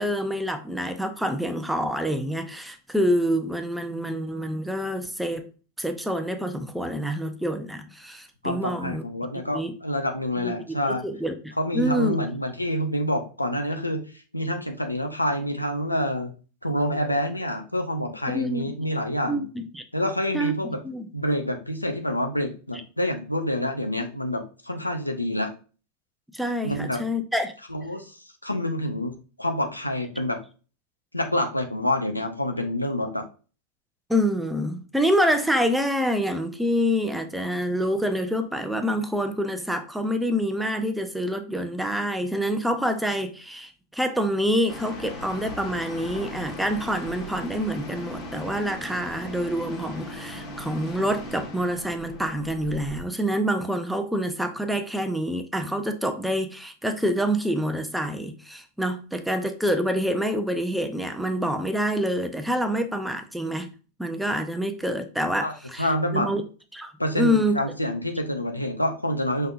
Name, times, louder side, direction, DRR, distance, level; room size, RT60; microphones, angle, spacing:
voice 1, 0.0-5.5 5.8-9.0 9.4-9.8 10.4-10.8 11.0-12.2 18.3-18.7 19.3-19.8 20.3-20.5 20.8-21.1 26.3-27.5 34.1-63.7 64.0-66.4 66.7-67.6, equal, 5° right, 0.6 m, -27 dB
voice 2, 8.4-11.0 11.6-14.0 14.3-16.3 16.6-19.5 19.9-20.8 21.1-25.5 26.6-27.0 27.7-28.1 28.4-30.4 31.1-33.2 65.4-65.5 65.8-66.3 67.0-69.5, left 1 dB, 90° left, 0.7 m, -27 dB
sound 1, 44.7-53.0, left 1 dB, 35° left, 1.5 m, -38 dB
5.4 x 3.7 x 2.5 m
figure-of-eight pair, 90°, 0 cm